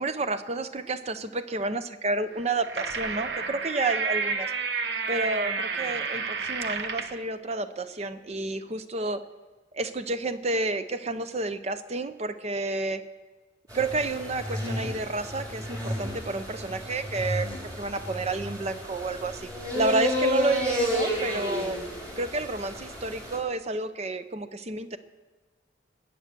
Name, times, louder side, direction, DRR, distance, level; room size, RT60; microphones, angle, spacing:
voice 1, 0.0-4.5 5.1-9.2 9.7-13.0 13.7-17.5 17.8-19.5 19.7-21.8 22.2-25.0, right 3 dB, 35° right, 11 dB, 0.6 m, -30 dB
sound 1, 2.4-7.2, right 5 dB, 65° right, 1.0 m, -30 dB
sound 2, 13.7-23.4, left 1 dB, 20° right, 3.0 m, -32 dB
20.0 x 8.0 x 6.7 m, 1.3 s
head